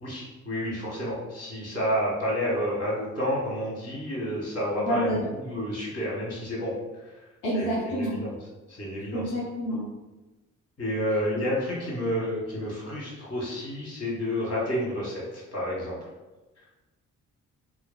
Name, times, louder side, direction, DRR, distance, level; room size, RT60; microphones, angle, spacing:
voice 1, 0.0-7.2 7.5-8.3 8.7-9.4 10.8-16.0 16.6-16.7, equal, 40° left, -5 dB, 1.5 m, -30 dB
voice 2, 4.8-5.3 7.4-8.2 9.1-9.9, equal, 90° left, -6 dB, 0.6 m, -28 dB
3.1 x 2.3 x 2.2 m, 1.1 s
hypercardioid pair, 45°, 39 cm